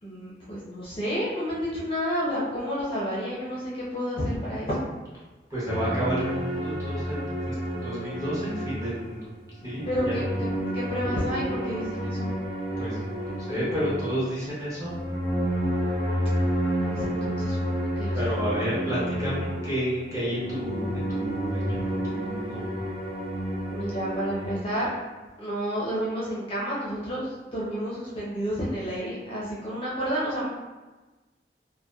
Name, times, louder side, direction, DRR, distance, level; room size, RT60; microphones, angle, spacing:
voice 1, 0.0-4.9 9.8-12.3 16.9-18.2 23.7-24.9 25.4-27.3 27.5-30.5, equal, 30° left, -7 dB, 0.5 m, -30 dB
voice 2, 5.5-7.2 7.5-7.6 7.8-9.3 9.6-10.2 12.8-15.0 18.1-22.6, equal, 20° right, -9 dB, 0.8 m, -31 dB
sound 1, 5.7-9.2 9.6-24.6, equal, 45° right, 0.8 m, -30 dB
2.7 x 2.1 x 2.3 m, 1.2 s
head